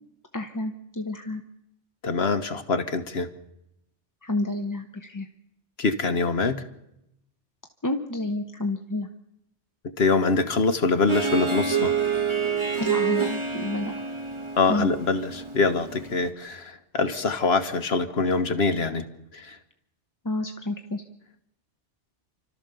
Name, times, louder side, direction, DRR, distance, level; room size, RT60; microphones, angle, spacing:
voice 1, 0.3-1.4 4.2-5.3 7.8-9.1 12.8-13.9 14.7-14.9 20.2-21.0, left 2 dB, 20° left, 6 dB, 0.7 m, -29 dB
voice 2, 2.0-3.3 5.8-6.6 10.0-11.9 14.6-19.0 19.3-19.6, left 4 dB, 60° left, 8 dB, 1.5 m, -24 dB
Harp, 11.1-16.3, right 6 dB, 25° right, 1.5 m, -28 dB
29.5 x 13.0 x 6.9 m, 0.84 s
omnidirectional pair, 1.2 m